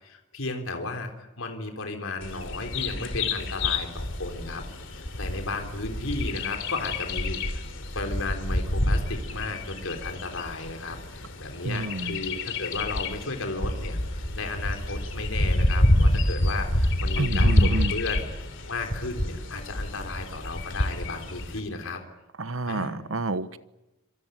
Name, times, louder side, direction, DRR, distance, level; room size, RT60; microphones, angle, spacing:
voice 1, 0.0-7.6 8.0-18.3 18.7-22.0 22.6-23.0, left 3 dB, 75° left, 4 dB, 3.6 m, -34 dB
Bird vocalization bird call bird song, 2.2-21.6, left 1 dB, 60° left, 3.3 m, -28 dB
voice 2, 11.6-12.2 17.2-17.9 22.4-23.6, right 2 dB, 70° right, 13 dB, 1.2 m, -29 dB
26.0 x 24.0 x 9.2 m, 0.99 s
head